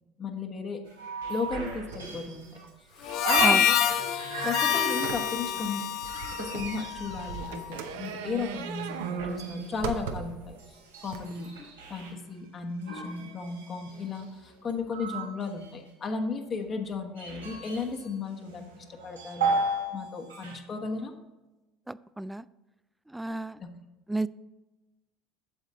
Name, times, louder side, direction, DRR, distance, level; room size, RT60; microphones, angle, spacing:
voice 1, 0.2-0.8 1.3-2.5 3.2-3.8 4.4-5.8 6.3-10.6 11.0-11.5 11.9-19.6 19.9-21.1 23.6-23.7, left 4 dB, 40° left, 4 dB, 1.2 m, -35 dB
sound 1, 0.9-3.6 3.9-7.0 7.5-12.1 12.8-15.9 16.6-18.1 18.5-19.9 20.2-20.6, right 3 dB, 90° right, 2.0 m, -36 dB
sound 2, 1.5-1.6 1.9-2.2 2.6-2.7 3.2-4.0 5.0-10.5 11.1-11.2, right 7 dB, 75° right, 0.7 m, -36 dB
Harmonica, 3.0-7.7, left 10 dB, 55° left, 0.7 m, -27 dB
voice 2, 21.9-22.4 23.1-23.6 24.1-24.3, right 2 dB, 5° right, 18 dB, 0.3 m, -31 dB
8.4 x 7.1 x 3.9 m, 1.1 s
hypercardioid pair, 70°, 0 cm